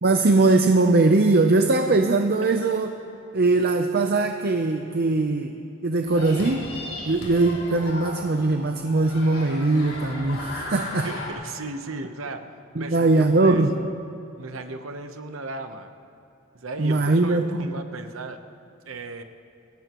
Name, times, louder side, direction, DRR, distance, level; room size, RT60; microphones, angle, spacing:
voice 1, 0.0-2.9 3.3-5.5 5.8-6.7 7.1-11.1 12.8-13.7 16.8-17.7, right 2 dB, 45° right, 4 dB, 0.7 m, -21 dB
sound 1, 6.1-11.3, left 2 dB, 75° left, 3.9 m, -36 dB
voice 2, 11.0-12.4 12.8-13.9 14.3-15.9 16.5-18.4 18.9-19.2, right 2 dB, 65° right, 7 dB, 1.0 m, -36 dB
25.5 x 17.5 x 3.1 m, 2.5 s
head